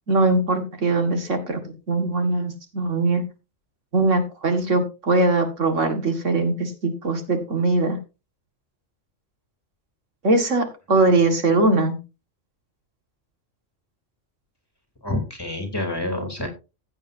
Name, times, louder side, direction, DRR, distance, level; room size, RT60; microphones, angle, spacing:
voice 1, 0.1-1.6 1.9-3.2 3.9-8.0 10.2-12.0, right 2 dB, 75° right, 6 dB, 2.2 m, -21 dB
voice 2, 15.0-16.5, left 1 dB, 20° left, 4 dB, 3.1 m, -27 dB
15.5 x 8.4 x 2.7 m, 0.29 s
omnidirectional pair, 1.3 m